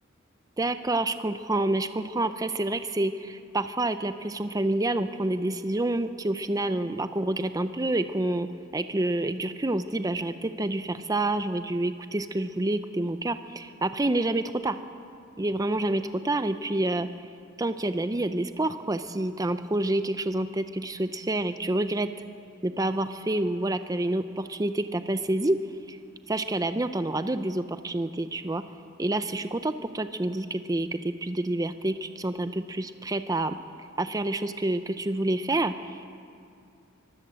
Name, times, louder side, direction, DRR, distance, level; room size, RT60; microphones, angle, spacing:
voice 1, 0.6-8.5 8.7-14.8 15.4-17.1 17.6-22.1 22.6-25.6 25.9-26.0 26.3-28.6 29.0-33.6 34.0-36.0, right 2 dB, 20° right, 10 dB, 0.6 m, -28 dB
24.5 x 14.5 x 7.6 m, 2.4 s
head